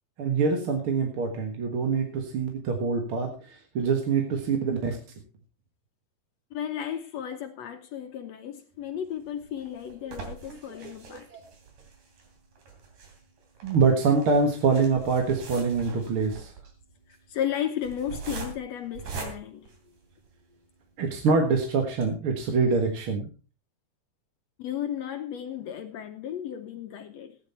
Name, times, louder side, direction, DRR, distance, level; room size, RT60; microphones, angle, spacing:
voice 1, 0.2-3.3 3.7-5.0 10.5-10.6 13.6-16.5 21.0-23.3, right 4 dB, 50° right, 2.1 m, -25 dB
voice 2, 6.5-11.3 17.3-19.7 24.6-27.4, left 9 dB, 70° left, 1.8 m, -34 dB
sound 1, 9.1-20.5 21.0-21.1 21.4-21.5 21.9-22.0, right 5 dB, 85° right, 4.5 m, -42 dB
15.0 x 10.0 x 4.3 m
omnidirectional pair, 3.8 m